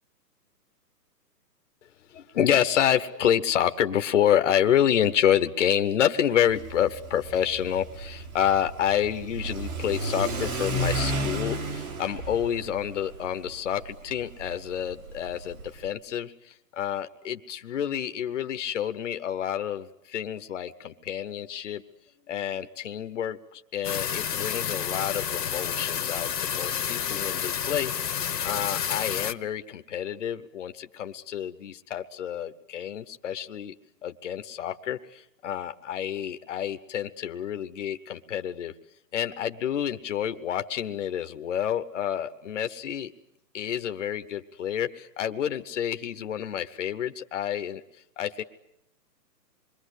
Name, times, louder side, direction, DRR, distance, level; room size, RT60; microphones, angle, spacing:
voice 1, 2.1-21.8 22.3-27.9 28.4-33.7 34.0-38.7 39.1-43.1 43.5-47.8 48.2-48.4, left 10 dB, 45° left, 8 dB, 1.1 m, -28 dB
Car / Accelerating revving vroom, 6.5-15.9, right 1 dB, 55° right, 4.3 m, -33 dB
sound 1, 23.8-29.3, left 8 dB, 80° left, 1.4 m, -30 dB
27.0 x 22.5 x 8.2 m, 0.81 s
hypercardioid pair, 165°, 50 cm